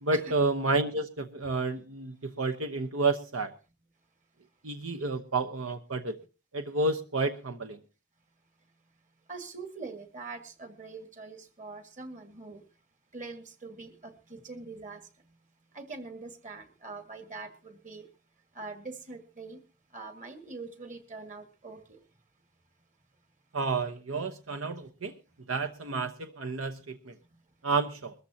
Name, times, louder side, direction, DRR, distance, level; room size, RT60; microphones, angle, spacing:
voice 1, 0.0-3.5 4.6-6.2 6.5-7.8 23.5-25.2 25.5-27.1 27.6-28.1, right 3 dB, 75° right, 8 dB, 1.0 m, -30 dB
voice 2, 9.3-12.7 13.1-15.1 15.7-18.1 18.5-19.6 19.9-22.0, right 3 dB, 40° right, 8 dB, 1.8 m, -43 dB
21.5 x 14.0 x 2.8 m, 0.32 s
head